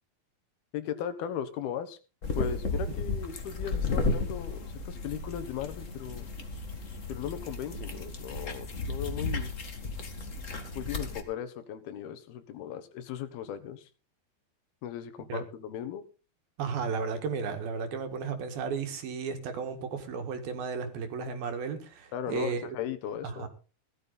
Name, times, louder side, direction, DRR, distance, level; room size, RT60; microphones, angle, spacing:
voice 1, 0.7-2.0 2.4-6.3 7.1-9.5 10.8-13.9 14.8-16.0 22.1-23.5, left 9 dB, 75° left, 3.1 m, -37 dB
sound 1, 2.2-11.2, left 3 dB, 55° left, 0.8 m, -34 dB
voice 2, 16.6-22.7 23.3-23.5, right 5 dB, 70° right, 3.6 m, -34 dB
16.5 x 12.5 x 4.0 m
omnidirectional pair, 4.5 m